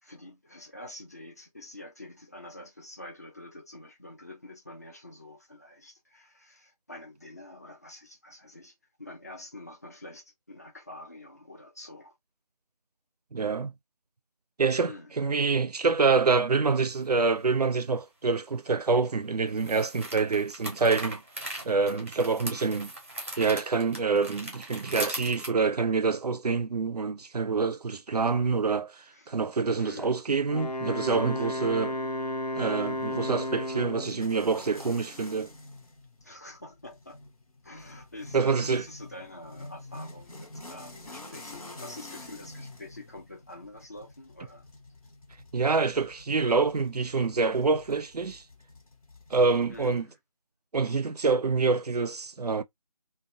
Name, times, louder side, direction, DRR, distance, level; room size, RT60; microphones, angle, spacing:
voice 1, 0.0-12.2 14.7-15.1 29.1-29.3 29.8-30.3 31.4-32.1 36.2-37.2 37.6-44.7 49.7-50.2, left 1 dB, 25° left, 0.5 m, -46 dB
voice 2, 13.3-13.7 14.6-21.2 21.6-22.9 23.4-28.9 29.3-31.9 32.6-35.5 38.3-38.8 45.5-48.4 49.3-50.1 50.7-52.6, right 4 dB, 80° right, 0.5 m, -26 dB
sound 1, 16.8-16.9 19.5-25.5, right 1 dB, 20° right, 0.6 m, -39 dB
Wind instrument woodwind instrument, 30.5-34.2, left 1 dB, 90° left, 0.6 m, -33 dB
sound 2, 32.7-50.0, left 2 dB, 60° left, 0.8 m, -47 dB
2.6 x 2.2 x 2.5 m
figure-of-eight pair, 160°, 20 cm